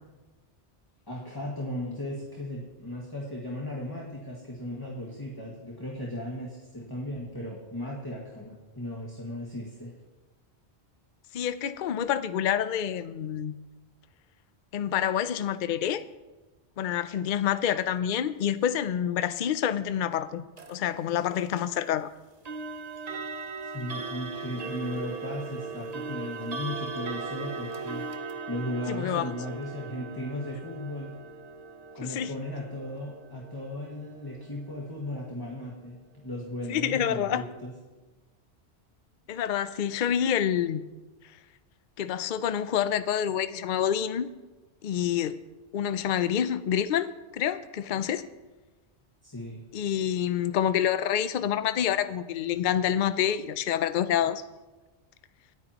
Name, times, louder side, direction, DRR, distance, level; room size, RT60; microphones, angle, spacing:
voice 1, 1.1-9.9 23.7-28.0 28.5-31.2 31.9-37.7 49.2-49.6, left 1 dB, 20° left, -4 dB, 1.8 m, -36 dB
voice 2, 11.3-13.5 14.7-16.0 16.8-20.4 20.7-22.1 28.9-29.3 32.0-32.3 36.7-37.4 39.3-40.8 42.0-44.3 44.8-45.4 45.7-48.3 49.7-54.4, left 9 dB, 55° left, 12 dB, 0.7 m, -27 dB
sound 1, 20.6-20.8 22.5-35.3, right 4 dB, 40° right, 0.8 m, -39 dB
26.5 x 9.2 x 3.0 m, 1.2 s
omnidirectional pair, 1.1 m